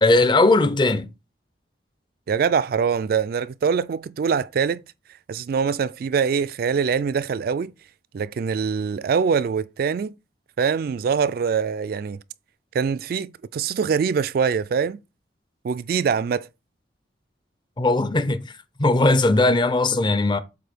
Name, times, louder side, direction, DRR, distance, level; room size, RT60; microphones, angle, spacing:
voice 1, 0.0-1.1 17.8-18.4 18.8-20.4, left 2 dB, 25° left, 0.5 m, -18 dB
voice 2, 2.3-4.8 5.3-7.7 8.1-10.1 10.6-12.2 12.7-15.0 15.6-16.5, right 6 dB, 55° right, 0.3 m, -23 dB
7.7 x 2.7 x 5.0 m
head